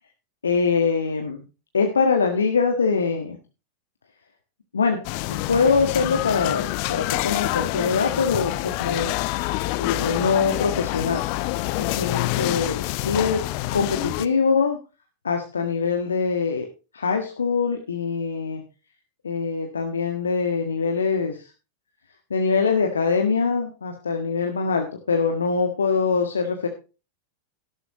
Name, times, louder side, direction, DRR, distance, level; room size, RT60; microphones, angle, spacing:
voice 1, 0.4-1.4 1.7-3.4 4.7-5.0 5.3-9.1 9.8-11.2 11.8-13.4 13.7-14.8 15.2-16.6 16.9-18.6 19.2-21.4 22.3-26.7, left 5 dB, 70° left, 4 dB, 1.6 m, -23 dB
sound 1, 5.0-14.3, left 18 dB, 45° left, 0.6 m, -27 dB
13.0 x 11.5 x 3.0 m, 0.31 s
figure-of-eight pair, 90°, 0 cm